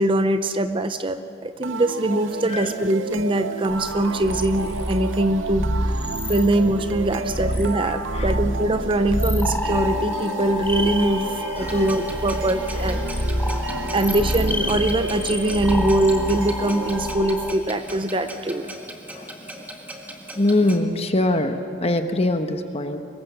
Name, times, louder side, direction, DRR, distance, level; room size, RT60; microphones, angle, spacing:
voice 1, 0.0-13.1 13.9-18.7, right 1 dB, 25° right, 10 dB, 0.7 m, -23 dB
sound 1, 1.6-17.6, right 4 dB, 85° right, 0.6 m, -33 dB
sound 2, 3.7-17.5, left 1 dB, 10° left, 0.9 m, -27 dB
voice 2, 7.8-8.4 11.4-11.9 12.3-12.4 12.9-13.0 19.1-19.5 20.3-23.0, left 2 dB, 30° left, 7 dB, 1.2 m, -24 dB
Clock, 11.6-20.8, right 1 dB, 10° right, 1.7 m, -38 dB
24.5 x 22.0 x 6.2 m, 2.5 s
head